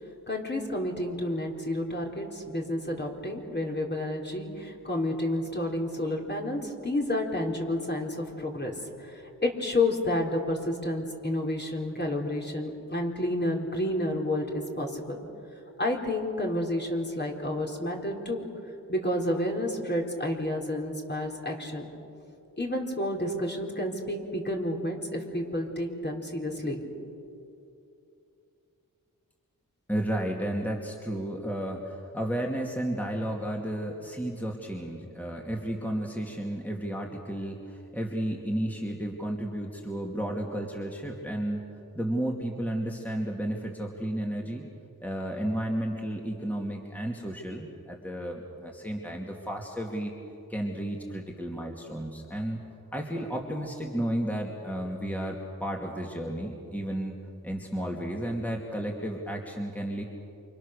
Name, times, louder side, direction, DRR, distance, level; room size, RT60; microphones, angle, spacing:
voice 1, 0.3-8.7 9.0-15.2 15.8-18.5 18.9-21.9 22.6-26.8, left 1 dB, 30° left, 0 dB, 4.3 m, -30 dB
voice 2, 29.9-41.6 41.9-44.7 45.0-50.1 50.5-52.6 52.9-57.2 57.4-60.0, right 1 dB, 5° left, -1 dB, 2.7 m, -32 dB
28.5 x 26.5 x 6.7 m, 2.7 s
wide cardioid pair, 75°, 34 cm